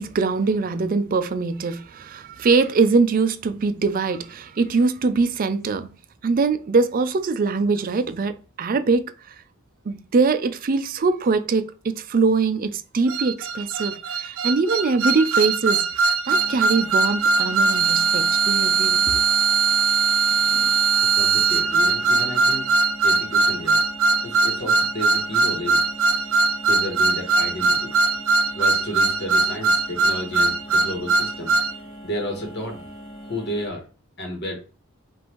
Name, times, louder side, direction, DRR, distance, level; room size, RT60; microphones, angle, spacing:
voice 1, 0.0-5.9 6.2-9.3 9.9-19.2, right 4 dB, 40° right, 0.4 m, -22 dB
sound 1, 13.1-31.7, right 4 dB, 80° right, 0.6 m, -20 dB
sound 2, 16.3-33.7, equal, ahead, 1.6 m, -41 dB
voice 2, 20.2-22.7 23.0-23.8 24.2-25.8 26.7-27.9 28.5-31.5 32.0-32.9 33.2-33.8 34.2-34.6, left 1 dB, 50° left, 1.2 m, -32 dB
5.3 x 2.5 x 3.0 m
head